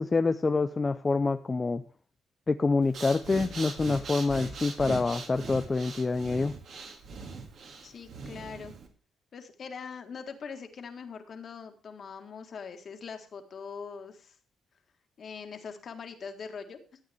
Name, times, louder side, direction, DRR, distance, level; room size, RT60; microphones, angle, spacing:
voice 1, 0.0-1.8 2.5-6.5, left 3 dB, 25° left, 8 dB, 0.5 m, -26 dB
Breathing, 2.8-8.9, right 4 dB, 60° right, 2.3 m, -40 dB
voice 2, 7.8-8.7 9.3-14.4 15.2-17.0, left 6 dB, 50° left, 6 dB, 1.8 m, -42 dB
13.0 x 8.4 x 3.5 m, 0.38 s
cardioid pair, 90°, 0 cm